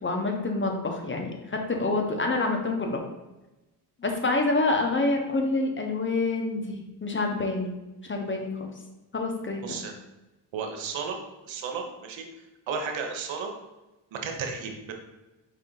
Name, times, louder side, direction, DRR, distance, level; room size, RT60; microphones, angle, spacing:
voice 1, 0.0-3.0 4.0-7.7 8.1-8.5 9.1-9.8, left 2 dB, 25° left, 2 dB, 0.9 m, -27 dB
voice 2, 9.6-9.9 10.5-11.2 11.4-12.2 12.7-13.5 14.1-14.9, right 5 dB, 70° right, 3 dB, 0.9 m, -33 dB
4.9 x 2.8 x 3.9 m, 1.0 s
supercardioid pair, 65°, 48 cm